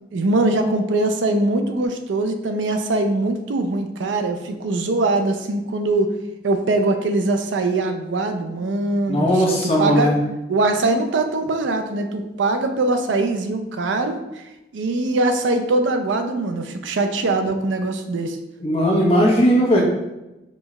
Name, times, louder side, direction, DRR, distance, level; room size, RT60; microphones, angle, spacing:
voice 1, 0.1-6.1 6.4-10.1 10.5-14.4 14.7-18.4, right 2 dB, 90° right, 6 dB, 0.5 m, -22 dB
voice 2, 9.1-10.2 18.6-19.8, equal, 30° left, -4 dB, 0.9 m, -17 dB
5.2 x 2.3 x 3.0 m, 0.96 s
head